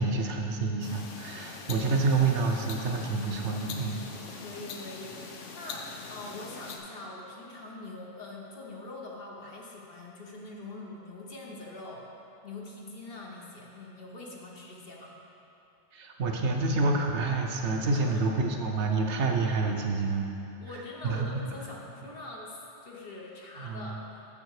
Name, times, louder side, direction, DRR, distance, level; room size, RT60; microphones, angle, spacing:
voice 1, 0.0-4.0 15.9-20.3 21.0-21.3 23.6-24.0, right 3 dB, 70° right, 2 dB, 1.0 m, -28 dB
sound 1, 0.8-6.8, left 4 dB, 85° left, 1.1 m, -43 dB
voice 2, 1.7-2.2 4.3-12.1 12.4-15.1 17.9-18.3 20.6-24.0, left 2 dB, 55° left, -2 dB, 1.2 m, -43 dB
7.3 x 6.8 x 4.7 m, 2.9 s
omnidirectional pair, 1.2 m